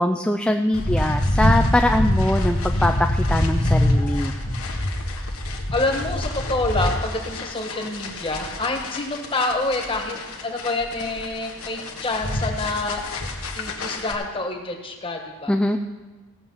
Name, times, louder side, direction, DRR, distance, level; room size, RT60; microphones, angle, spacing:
voice 1, 0.0-4.3 15.5-15.8, left 1 dB, 5° left, 4 dB, 0.3 m, -22 dB
sound 1, 0.7-14.1, left 1 dB, 75° left, 1.5 m, -25 dB
voice 2, 5.7-10.2 10.4-13.0 13.5-15.5, left 2 dB, 25° left, 3 dB, 1.4 m, -27 dB
16.5 x 7.1 x 5.7 m, 1.3 s
head